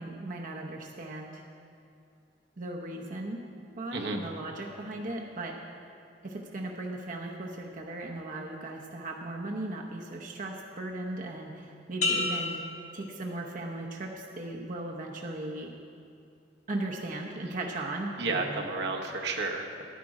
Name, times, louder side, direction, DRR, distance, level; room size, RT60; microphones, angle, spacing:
voice 1, 0.0-1.4 2.6-3.4 3.8-5.6 6.2-12.6 12.9-15.7 16.7-18.6, right 2 dB, 50° right, 0 dB, 0.8 m, -37 dB
sound 1, 12.0-13.8 14.3-14.7, left 2 dB, 45° left, 1.7 m, -33 dB
voice 2, 18.2-19.8, right 3 dB, 70° right, 1 dB, 1.1 m, -32 dB
12.0 x 10.5 x 4.8 m, 2.5 s
head